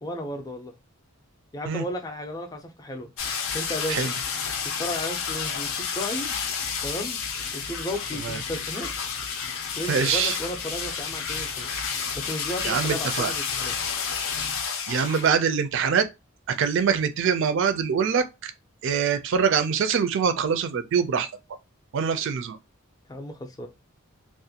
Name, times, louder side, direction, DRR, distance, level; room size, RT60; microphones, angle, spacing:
voice 1, 0.0-0.7 1.5-3.1 3.5-4.1 4.7-6.4 6.8-7.2 7.5-8.9 9.7-11.7 12.1-13.8 23.1-23.7, left 1 dB, 20° left, 0.4 m, -34 dB
sound 1, 3.2-15.3 15.6-15.7, left 6 dB, 75° left, 0.5 m, -30 dB
voice 2, 9.9-10.3 12.6-13.3 14.9-16.0 16.5-18.5 18.8-21.3 21.9-22.6, right 6 dB, 60° right, 0.4 m, -24 dB
2.5 x 2.2 x 2.7 m
head